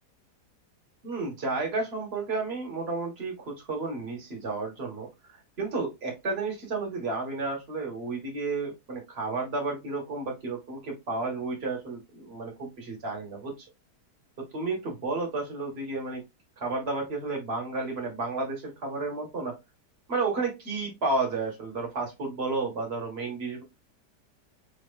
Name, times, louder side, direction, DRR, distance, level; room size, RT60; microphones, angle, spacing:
voice 1, 1.0-5.1 5.6-13.5 14.5-16.2 16.6-19.5 20.1-23.6, right 3 dB, 40° right, 0 dB, 1.7 m, -32 dB
5.2 x 3.1 x 2.4 m, 0.22 s
omnidirectional pair, 1.8 m